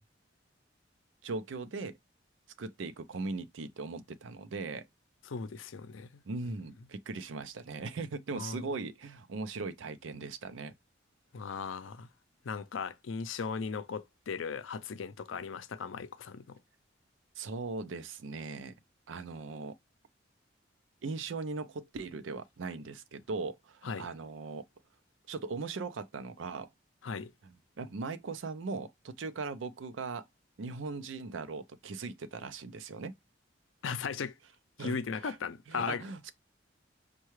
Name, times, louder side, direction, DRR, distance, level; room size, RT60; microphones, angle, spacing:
voice 1, 1.2-2.0 2.6-4.9 6.3-10.7 17.4-18.7 19.1-19.8 21.0-24.7 25.3-26.7 27.4-27.5 27.8-30.3 30.6-33.1 34.8-35.4 35.7-36.3, right 4 dB, 85° right, 0.5 m, -39 dB
voice 2, 5.3-6.2 8.4-8.6 11.3-12.1 12.4-16.6 23.8-24.1 27.0-27.3 33.8-34.3 34.8-36.0, left 5 dB, 85° left, 0.5 m, -37 dB
5.5 x 2.3 x 3.1 m
head